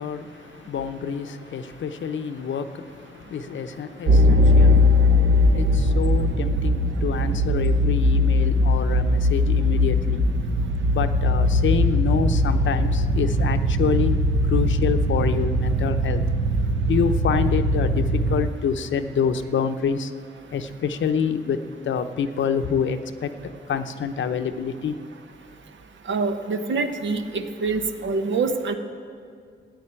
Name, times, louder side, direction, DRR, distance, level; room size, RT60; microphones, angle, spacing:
voice 1, 0.0-10.3 10.9-14.2 14.5-16.2 16.8-20.1 20.5-21.6 21.8-25.0, left 6 dB, 85° left, 9 dB, 0.8 m, -27 dB
sound 1, 4.1-18.5, left 1 dB, 55° right, 0.7 m, -20 dB
voice 2, 26.1-28.7, right 4 dB, 80° right, 7 dB, 1.1 m, -25 dB
14.0 x 9.1 x 8.8 m, 2.2 s
wide cardioid pair, 115°, 19 cm